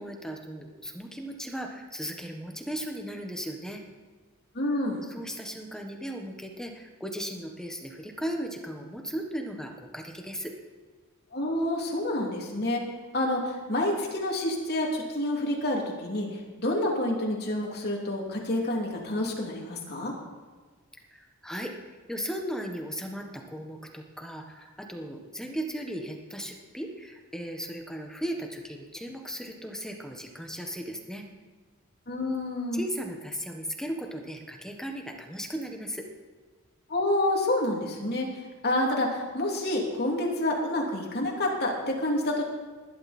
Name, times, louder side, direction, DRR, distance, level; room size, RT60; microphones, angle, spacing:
voice 1, 0.0-3.8 5.1-10.5 21.1-21.7 22.1-31.2 32.7-36.0, equal, 5° left, 2 dB, 1.5 m, -36 dB
voice 2, 4.5-5.1 11.3-12.8 13.1-20.1 32.1-32.8 36.9-38.3 38.6-42.4, left 1 dB, 50° left, -1 dB, 3.0 m, -28 dB
19.5 x 12.0 x 4.4 m, 1.4 s
head